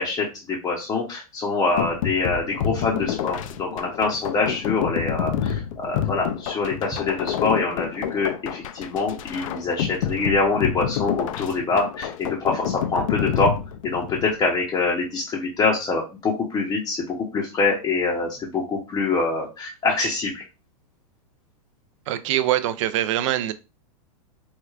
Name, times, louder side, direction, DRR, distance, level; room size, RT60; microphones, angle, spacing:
voice 1, 0.0-13.5 13.8-20.4, left 3 dB, 20° left, -3 dB, 0.6 m, -25 dB
sound 1, 1.8-14.3, left 9 dB, 60° left, 0.4 m, -28 dB
voice 2, 22.1-23.5, right 12 dB, 55° right, 12 dB, 0.4 m, -23 dB
4.5 x 2.2 x 2.4 m, 0.29 s
hypercardioid pair, 135°, 19 cm